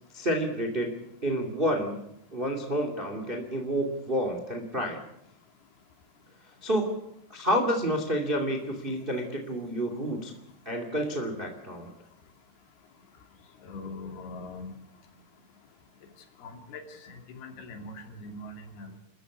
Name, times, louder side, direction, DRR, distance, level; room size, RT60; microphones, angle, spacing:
voice 1, 0.1-0.9 1.2-2.0 2.3-5.0 6.6-7.0 7.3-10.3 10.6-11.9, equal, 20° right, 5 dB, 1.6 m, -29 dB
voice 2, 13.6-14.7 16.4-19.0, left 2 dB, 65° left, 5 dB, 4.5 m, -42 dB
29.0 x 14.5 x 8.5 m, 0.81 s
omnidirectional pair, 5.1 m